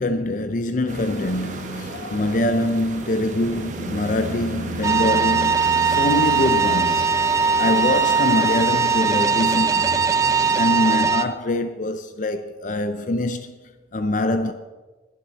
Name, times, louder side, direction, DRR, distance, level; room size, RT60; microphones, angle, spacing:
voice 1, 0.0-7.1 7.6-10.0 10.5-13.5 13.9-14.5, left 1 dB, 45° left, 0.5 m, -24 dB
sound 1, 0.9-11.0, right 2 dB, 45° right, 1.1 m, -35 dB
sound 2, 3.4-7.8, right 2 dB, 75° right, 0.7 m, -34 dB
sound 3, 4.8-11.2, right 5 dB, 20° right, 0.6 m, -20 dB
21.5 x 7.4 x 4.1 m
head